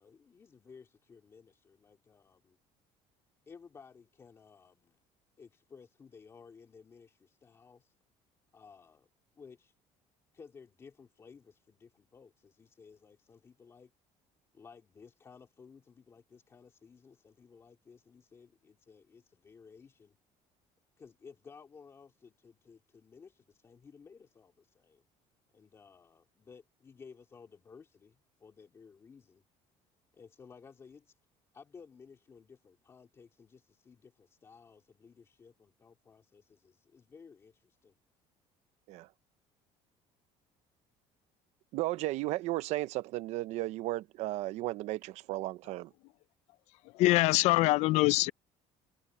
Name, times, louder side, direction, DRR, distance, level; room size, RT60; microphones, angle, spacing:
voice 1, 0.0-2.6 3.5-5.0 5.4-7.9 8.5-9.1 9.4-9.7 10.3-13.9 14.5-20.2 21.0-25.0 25.5-29.4 30.1-31.2 31.5-38.0, left 5 dB, 20° left, 2.6 m, -56 dB
voice 2, 41.7-45.9, right 17 dB, 60° right, 0.7 m, -34 dB
voice 3, 47.0-48.3, left 19 dB, 60° left, 0.4 m, -24 dB
cardioid pair, 180°, 13 cm